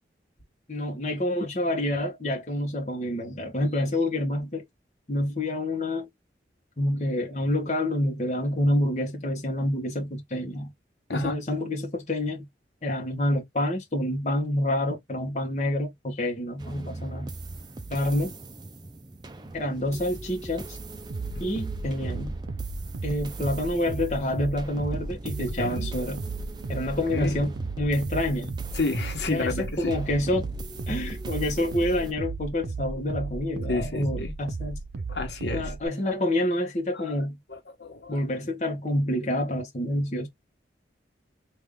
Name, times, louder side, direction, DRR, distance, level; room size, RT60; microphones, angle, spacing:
voice 1, 0.7-4.6 5.1-6.1 6.8-10.7 11.1-12.5 12.8-17.3 17.9-18.3 19.5-20.8 21.4-22.3 23.0-26.2 26.7-28.6 29.3-30.5 30.9-34.8 35.5-37.4 38.1-40.3, left 1 dB, 40° left, 1.0 m, -28 dB
sound 1, 16.6-32.1, right 2 dB, 25° right, 0.5 m, -40 dB
sound 2, 21.1-35.9, right 3 dB, 75° right, 0.6 m, -35 dB
voice 2, 25.6-25.9 27.1-27.5 28.7-30.0 33.7-34.3 35.1-35.7 36.9-37.1 37.5-38.2, left 3 dB, 75° left, 1.2 m, -31 dB
3.4 x 2.6 x 3.6 m
head